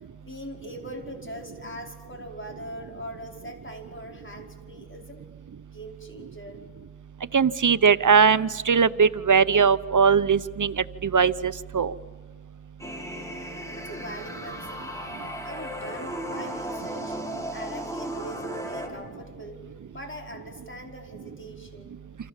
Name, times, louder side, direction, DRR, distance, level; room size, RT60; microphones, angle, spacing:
voice 1, 0.2-5.2 5.7-6.6 13.7-14.9 15.4-17.2 17.5-19.6 19.9-22.0, equal, 40° left, 3 dB, 5.0 m, -41 dB
voice 2, 7.3-10.7 11.0-11.9, right 6 dB, 75° right, 15 dB, 0.7 m, -20 dB
sound 1, 12.8-18.9, equal, 10° left, 5.6 m, -35 dB
28.0 x 27.0 x 7.4 m, 1.5 s
wide cardioid pair, 50°, 31 cm